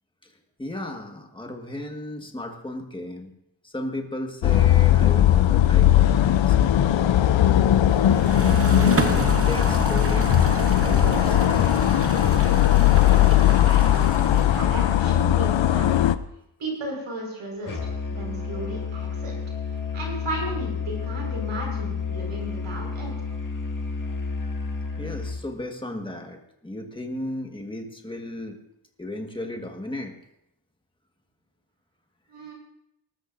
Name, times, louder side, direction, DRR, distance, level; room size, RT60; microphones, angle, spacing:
voice 1, 0.6-3.3 3.6-6.6 8.1-11.7 25.0-28.6 29.0-30.1, left 1 dB, 10° left, 3 dB, 1.6 m, -35 dB
sound 1, 4.4-16.1, left 11 dB, 70° left, 0.7 m, -18 dB
sound 2, 7.9-14.9, right 3 dB, 30° right, 0.9 m, -31 dB
voice 2, 13.1-16.0 16.6-19.4 19.9-23.1 32.3-32.5, right 1 dB, 85° right, 0 dB, 5.2 m, -35 dB
Musical instrument, 17.7-25.5, left 5 dB, 40° left, 2.0 m, -31 dB
20.0 x 13.0 x 2.6 m, 0.82 s
wide cardioid pair, 110°, 47 cm